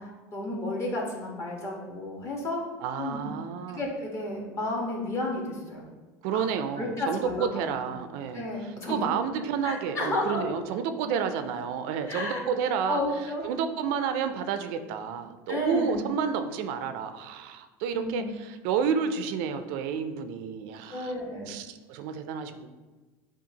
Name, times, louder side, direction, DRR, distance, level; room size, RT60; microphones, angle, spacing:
voice 1, 0.0-2.6 3.0-3.3 3.7-5.8 6.3-6.4 6.8-7.7 8.3-9.0 9.6-10.5 12.1-12.4 12.9-13.4 15.5-16.0 17.9-18.2 20.9-21.5, left 1 dB, 35° left, -2 dB, 1.3 m, -32 dB
voice 2, 2.8-3.8 6.2-13.0 13.4-21.1 21.5-22.7, right 7 dB, 70° right, 9 dB, 0.4 m, -30 dB
7.0 x 2.4 x 2.8 m, 1.3 s
supercardioid pair, 115°, 8 cm